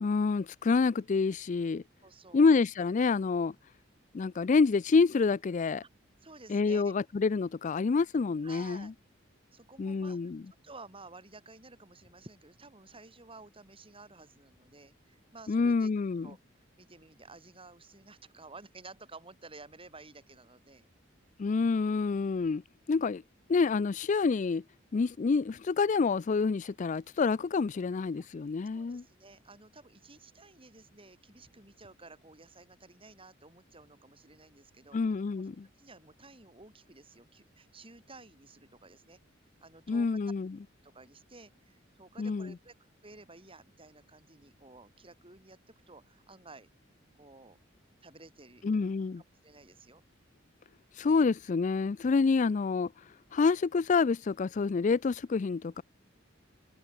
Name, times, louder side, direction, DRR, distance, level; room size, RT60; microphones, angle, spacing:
voice 1, 0.0-1.8 2.3-3.5 4.1-5.8 6.5-8.9 9.8-10.4 15.5-16.3 21.4-22.6 22.9-23.2 23.5-24.6 24.9-29.0 34.9-35.7 39.9-40.6 42.2-42.5 48.6-49.2 51.0-52.9 53.3-55.8, left 4 dB, 40° left, 0.4 m, -27 dB
voice 2, 2.0-2.5 6.2-6.9 8.4-8.9 9.5-10.2 10.6-15.9 16.2-20.9 28.2-28.3 28.7-35.1 35.8-39.2 39.6-40.1 40.8-46.7 47.2-47.6 48.0-48.6 49.4-50.0, right 3 dB, 30° right, 6.7 m, -53 dB
head